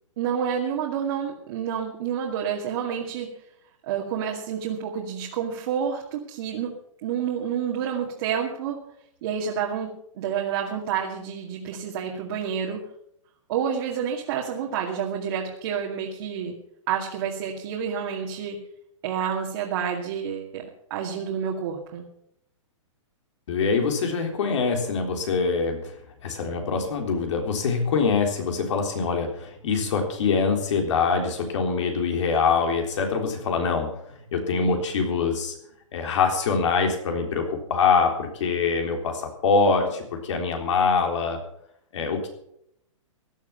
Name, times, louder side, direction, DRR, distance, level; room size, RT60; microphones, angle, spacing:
voice 1, 0.2-3.3 3.8-6.7 7.0-8.8 9.2-12.8 13.5-16.5 16.9-18.6 19.0-20.6 20.9-22.1, right 8 dB, 45° right, -2 dB, 2.3 m, -29 dB
voice 2, 23.5-26.0 26.2-33.9 34.3-35.5 35.9-41.4 41.9-42.3, left 5 dB, 65° left, 4 dB, 3.7 m, -24 dB
16.0 x 10.5 x 5.8 m, 0.73 s
hypercardioid pair, 150°, 17 cm